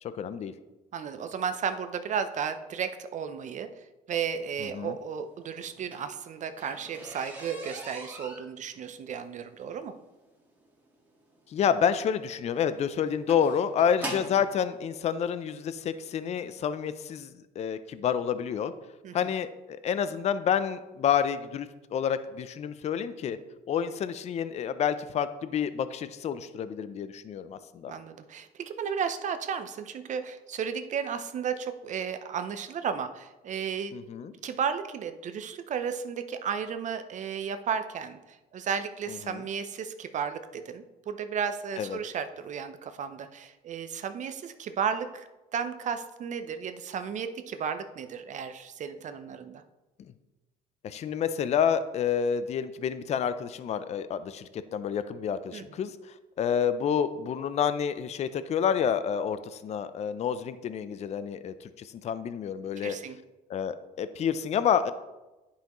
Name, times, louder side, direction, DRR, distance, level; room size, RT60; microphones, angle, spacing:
voice 1, 0.0-0.5 4.6-4.9 11.5-18.7 19.1-23.4 23.7-27.9 33.9-34.3 39.1-39.4 41.8-42.0 50.8-63.0 63.5-64.9, left 8 dB, 40° left, 13 dB, 0.4 m, -29 dB
voice 2, 0.9-9.9 19.0-19.2 27.9-33.9 34.4-49.6 55.5-55.6 62.8-63.2, right 7 dB, 45° right, 10 dB, 0.5 m, -34 dB
sound 1, 5.6-14.5 15.4-15.5 16.1-16.3 16.6-16.7 17.0-17.1, right 1 dB, 10° right, 1.6 m, -43 dB
9.9 x 5.6 x 3.0 m, 1.1 s
cardioid pair, 110°, 17 cm